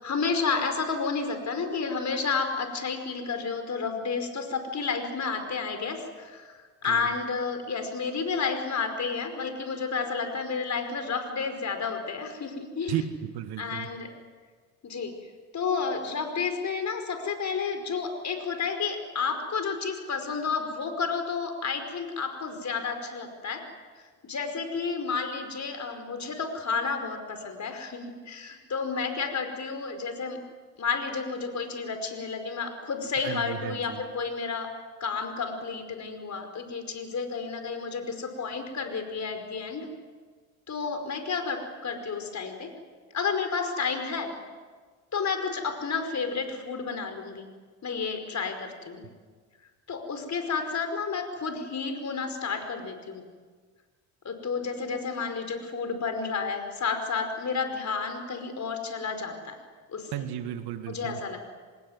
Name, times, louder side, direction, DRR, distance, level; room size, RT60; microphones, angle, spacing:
voice 1, 0.0-6.5 6.8-13.0 13.6-14.1 14.8-15.1 15.5-23.6 24.2-30.4 30.8-34.7 35.0-39.9 40.7-42.7 43.1-44.3 45.1-47.5 47.8-49.0 49.9-53.2 54.2-59.6 59.9-60.2 60.9-61.4, left 5 dB, 40° left, 7 dB, 5.2 m, -31 dB
voice 2, 12.9-13.9 33.2-34.0 60.1-61.2, right 11 dB, 70° right, 9 dB, 2.1 m, -34 dB
25.5 x 20.5 x 9.6 m, 1.5 s
hypercardioid pair, 65°, 41 cm